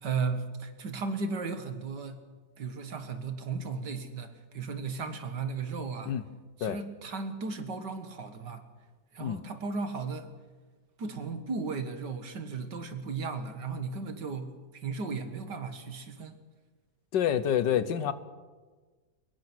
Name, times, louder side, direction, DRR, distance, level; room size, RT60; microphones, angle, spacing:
voice 1, 0.0-2.2 2.6-6.1 6.6-8.6 9.1-10.3 11.0-14.5 14.8-16.3, right 4 dB, 70° right, 2.3 m, -35 dB
voice 2, 17.1-18.1, left 9 dB, 80° left, 1.7 m, -27 dB
23.5 x 21.0 x 6.2 m
omnidirectional pair, 1.9 m